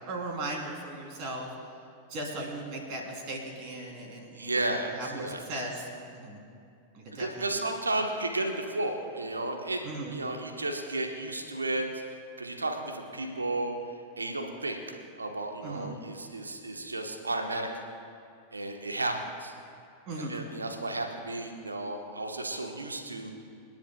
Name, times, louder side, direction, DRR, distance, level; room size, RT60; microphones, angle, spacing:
voice 1, 0.1-1.5 2.1-4.6 4.8-6.4 6.9-7.6 9.8-10.2 15.6-16.0 20.1-20.5, right 2 dB, 40° right, 0 dB, 3.2 m, -38 dB
voice 2, 4.3-5.4 7.1-9.8 10.1-11.8 12.4-13.8 14.2-14.8 15.2-17.7 18.5-19.1 19.4-19.5 20.3-23.3, right 2 dB, 80° right, 3 dB, 1.1 m, -33 dB
28.5 x 10.5 x 2.3 m, 2.5 s
figure-of-eight pair, 90°, 0 cm